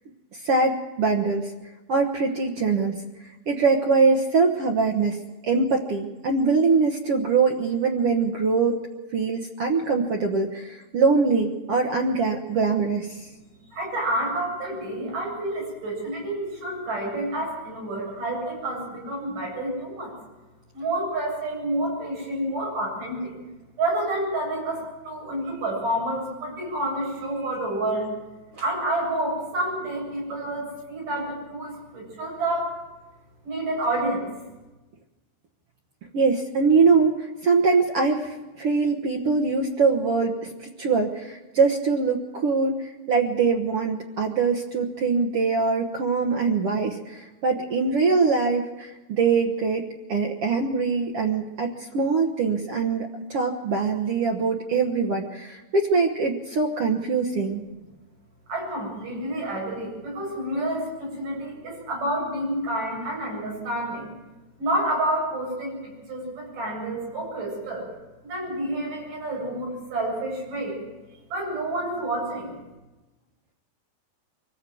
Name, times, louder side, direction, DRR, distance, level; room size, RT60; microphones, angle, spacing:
voice 1, 0.3-1.5 1.9-3.0 3.2-5.2 5.4-8.8 9.1-13.3 36.1-57.6, right 4 dB, 85° right, 1 dB, 1.2 m, -23 dB
voice 2, 13.5-20.2 20.7-23.3 23.8-28.1 28.6-32.7 33.4-34.3 58.5-64.1 64.6-67.9 68.2-70.8 71.3-72.5, right 1 dB, 55° right, -2 dB, 9.2 m, -29 dB
24.5 x 15.5 x 7.7 m, 1.1 s
omnidirectional pair, 4.6 m